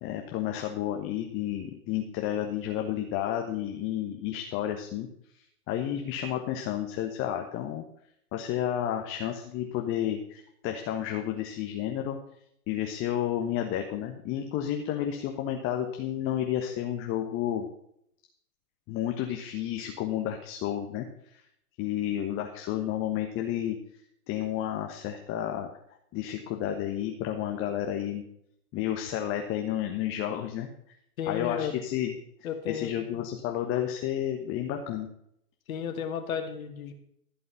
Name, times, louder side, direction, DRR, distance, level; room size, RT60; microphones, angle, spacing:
voice 1, 0.0-5.1 5.7-7.8 8.3-12.2 12.7-17.6 18.9-21.0 21.3-21.4 21.8-23.8 24.3-25.7 26.1-28.2 28.7-30.7 31.3-32.2 32.7-35.1, left 11 dB, 25° left, 4 dB, 1.3 m, -31 dB
voice 2, 31.2-31.7 32.4-33.0 35.7-36.9, left 8 dB, 60° left, 6 dB, 2.6 m, -33 dB
15.0 x 5.5 x 6.9 m, 0.73 s
hypercardioid pair, 125°, 46 cm